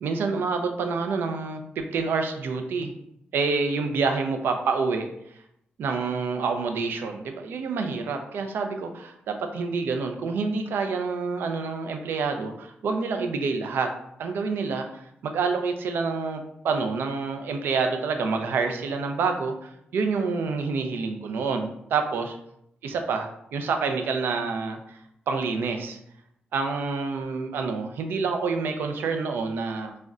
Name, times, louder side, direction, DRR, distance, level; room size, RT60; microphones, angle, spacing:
voice 1, 0.0-3.0 3.3-5.1 5.8-13.9 14.2-22.4 22.8-25.0 25.3-26.0 26.5-30.0, right 4 dB, 70° right, 5 dB, 0.3 m, -27 dB
2.3 x 2.1 x 3.7 m, 0.77 s
wide cardioid pair, 165°, 4 cm